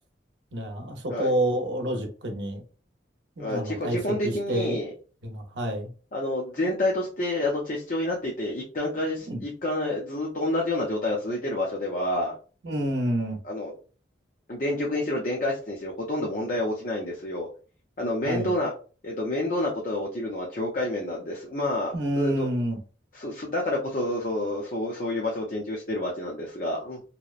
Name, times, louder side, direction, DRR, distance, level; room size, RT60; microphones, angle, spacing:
voice 1, 0.5-2.6 3.4-4.8 5.2-5.9 9.3-9.4 12.6-13.4 18.2-18.5 21.9-22.8, right 1 dB, 85° right, 3 dB, 0.7 m, -28 dB
voice 2, 3.4-4.9 6.1-12.4 13.4-13.7 14.5-17.5 18.0-18.7 19.0-22.5 23.1-27.0, left 1 dB, 50° left, -2 dB, 0.5 m, -28 dB
2.8 x 2.0 x 2.3 m, 0.37 s
head